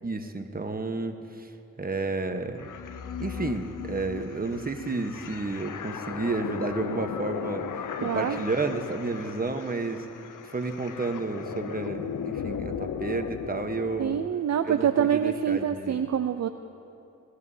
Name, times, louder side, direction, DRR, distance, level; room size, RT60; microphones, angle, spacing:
voice 1, 0.0-1.5 1.8-2.7 3.2-7.6 8.0-10.0 10.4-14.2 14.7-16.1, right 3 dB, 25° right, 5 dB, 1.1 m, -31 dB
sound 1, 2.6-14.3, left 8 dB, 65° left, 0.6 m, -37 dB
voice 2, 8.0-8.4 14.0-16.5, right 9 dB, 50° right, 8 dB, 0.5 m, -26 dB
20.0 x 14.5 x 2.8 m, 2.7 s
cardioid pair, 50°, 34 cm